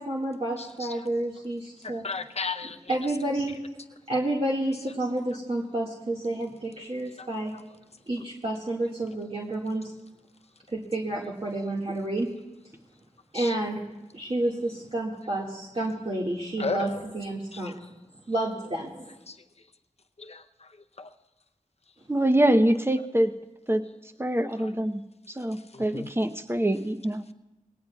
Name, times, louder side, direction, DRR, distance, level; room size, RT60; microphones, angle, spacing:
voice 1, 0.0-2.1 2.9-3.6 4.1-7.5 8.1-9.9 10.7-12.3 13.3-13.8 14.1-17.7 18.3-19.2, right 1 dB, 45° right, -5 dB, 1.9 m, -30 dB
voice 2, 0.6-1.0 1.8-3.0 7.2-7.3 13.3-13.6 16.6-17.0 17.5-17.7 19.3-19.4 20.2-20.7 21.0-21.1 24.6-24.7 25.7-26.1, left 4 dB, 50° left, 6 dB, 0.7 m, -35 dB
voice 3, 22.1-23.3 23.7-23.8 24.2-25.0 25.4-27.2, right 1 dB, 15° right, 8 dB, 0.8 m, -24 dB
21.5 x 18.0 x 2.3 m, 1.0 s
wide cardioid pair, 50°, 14 cm